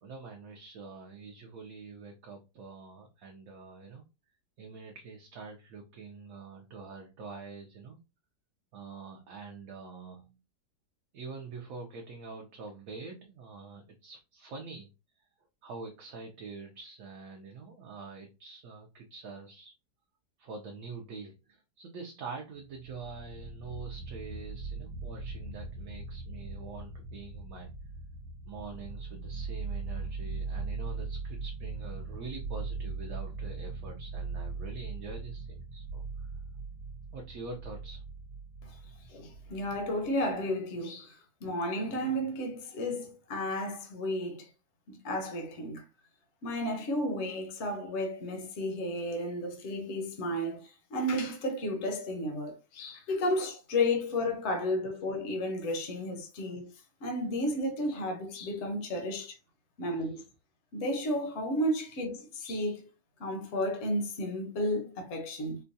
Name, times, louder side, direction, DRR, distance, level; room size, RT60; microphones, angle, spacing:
voice 1, 0.0-4.0 4.6-8.0 8.7-10.3 11.1-14.9 15.6-19.7 20.4-27.7 28.5-36.3 37.1-38.0, right 4 dB, 65° right, 0.9 m, -45 dB
sound 1, 23.0-40.1, right 4 dB, 85° right, 1.3 m, -40 dB
voice 2, 39.1-44.5 44.9-45.8 46.4-56.7 57.0-59.4 59.8-60.2 60.7-62.9 63.2-65.6, left 1 dB, 50° left, 0.9 m, -33 dB
4.4 x 2.2 x 2.6 m
omnidirectional pair, 1.8 m